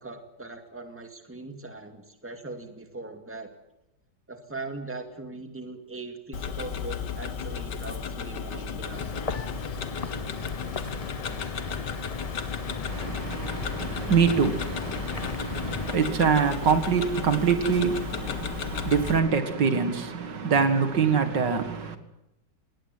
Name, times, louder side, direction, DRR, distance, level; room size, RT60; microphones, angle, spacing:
voice 1, 0.0-3.5 4.3-9.1, right 3 dB, 5° right, 2.2 m, -40 dB
Tick-tock, 6.3-19.2, left 6 dB, 75° left, 2.0 m, -34 dB
sound 1, 8.9-16.0, left 4 dB, 30° left, 0.7 m, -36 dB
voice 2, 12.9-22.0, right 6 dB, 75° right, 2.5 m, -25 dB
19.5 x 18.0 x 9.6 m
omnidirectional pair, 1.9 m